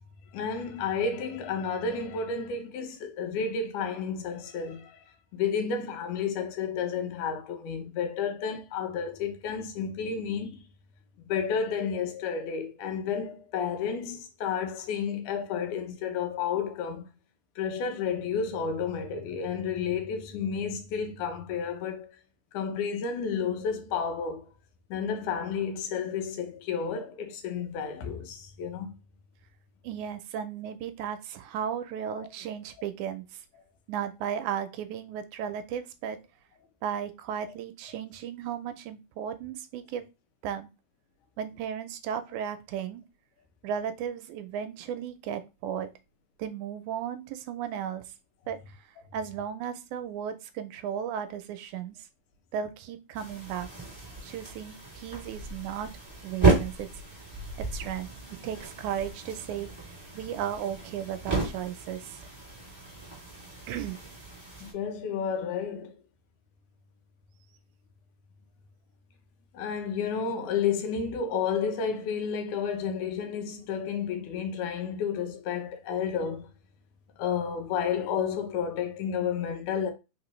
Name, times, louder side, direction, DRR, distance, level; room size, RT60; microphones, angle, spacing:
voice 1, 0.3-5.0 5.3-10.6 11.2-17.1 17.6-22.2 22.5-24.5 24.9-28.9 32.2-32.3 64.6-66.0 69.5-76.5 77.2-79.9, left 6 dB, 80° left, 2.3 m, -31 dB
voice 2, 29.8-33.4 33.9-36.2 36.8-40.0 40.4-40.7 41.4-43.0 43.6-45.9 46.4-48.0 48.5-48.8 49.1-52.0 52.5-53.7 54.2-55.9 56.2-56.9 57.6-58.1 58.4-59.7 60.2-62.2 63.7-64.0, right 8 dB, 80° right, 1.9 m, -35 dB
sound 1, 53.1-64.7, right 3 dB, 10° right, 2.3 m, -32 dB
4.4 x 3.7 x 3.0 m
omnidirectional pair, 3.6 m